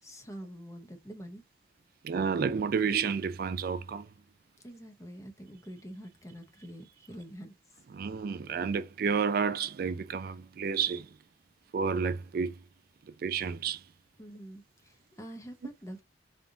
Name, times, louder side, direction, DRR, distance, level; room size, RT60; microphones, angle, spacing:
voice 1, 0.0-1.4 4.6-7.6 14.2-16.0, equal, 15° left, 0.8 m, -46 dB
voice 2, 2.0-4.1 7.9-11.1 11.7-12.5 13.2-13.8, right 6 dB, 55° right, 0.3 m, -30 dB
3.7 x 3.4 x 2.7 m
head